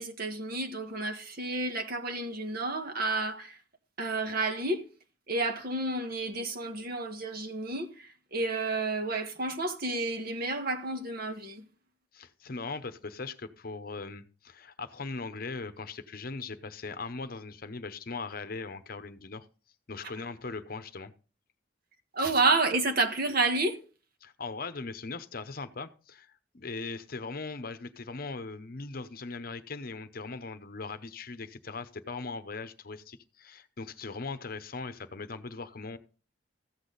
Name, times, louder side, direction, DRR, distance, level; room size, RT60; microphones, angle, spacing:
voice 1, 0.0-3.6 4.0-4.8 5.3-11.6 22.1-23.8, right 3 dB, 55° right, 1.6 m, -30 dB
voice 2, 12.1-19.5 19.9-21.1 24.2-36.0, left 3 dB, 50° left, 0.8 m, -39 dB
14.5 x 8.3 x 4.0 m
head